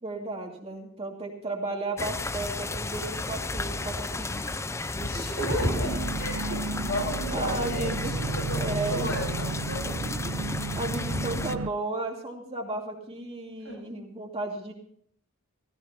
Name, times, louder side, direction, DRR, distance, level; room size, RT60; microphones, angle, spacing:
voice 1, 0.0-4.5 4.9-5.7 6.5-6.9 7.3-8.1 8.6-9.1 9.9-14.7, right 2 dB, 25° right, 0 dB, 2.5 m, -34 dB
sound 1, 2.0-11.6, left 2 dB, 10° left, 0.4 m, -33 dB
voice 2, 4.9-9.8 13.6-13.9, left 1 dB, 65° left, -1 dB, 7.6 m, -35 dB
sound 2, 5.6-11.7, right 3 dB, 70° right, 0.5 m, -33 dB
16.5 x 16.0 x 2.9 m, 0.64 s
head